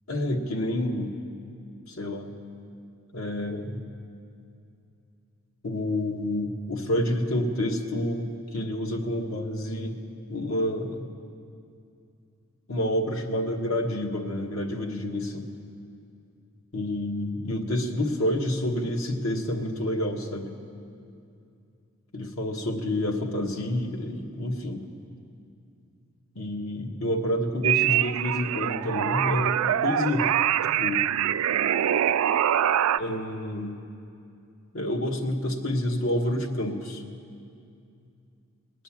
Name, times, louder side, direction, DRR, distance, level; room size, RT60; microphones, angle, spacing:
voice 1, 0.1-1.1 1.9-2.3 3.1-3.8 5.6-10.0 10.3-11.0 12.7-15.5 16.7-20.5 22.1-24.8 26.3-30.3 30.8-31.1 33.0-33.7 34.7-37.0, left 1 dB, 85° left, 1 dB, 1.4 m, -28 dB
sound 1, 27.6-33.0, right 10 dB, 90° right, 0.3 m, -24 dB
19.5 x 9.2 x 7.3 m, 2.5 s
head